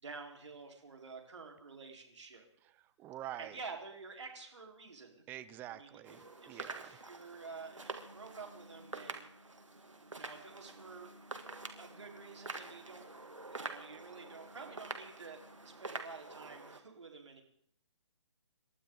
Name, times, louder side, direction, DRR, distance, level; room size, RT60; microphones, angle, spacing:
voice 1, 0.0-2.4 3.4-5.2 5.7-9.3 10.1-11.1 11.8-13.0 13.5-17.4, right 4 dB, 70° right, 2 dB, 4.4 m, -50 dB
voice 2, 3.0-3.6 5.3-7.0, right 13 dB, 10° right, 13 dB, 0.5 m, -46 dB
sound 1, 6.0-16.8, right 2 dB, 85° right, 2.6 m, -47 dB
28.5 x 13.0 x 4.0 m, 0.66 s
figure-of-eight pair, 145°, 16 cm